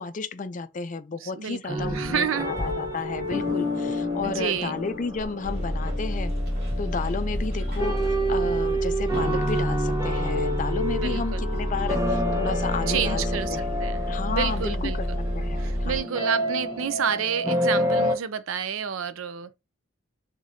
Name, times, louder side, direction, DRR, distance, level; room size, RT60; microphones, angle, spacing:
voice 1, 0.0-6.3 6.8-13.2 13.5-15.1 15.3-16.0, left 4 dB, 40° left, 0.4 m, -32 dB
voice 2, 1.2-2.5 4.2-4.7 11.0-11.5 12.9-15.2 15.6-19.5, right 7 dB, 80° right, 0.5 m, -30 dB
sound 1, 1.7-18.1, equal, 15° right, 1.0 m, -29 dB
sound 2, 1.8-9.5, equal, 15° left, 2.2 m, -42 dB
Bus, 5.4-16.0, equal, 50° right, 2.3 m, -29 dB
4.9 x 3.7 x 2.7 m
head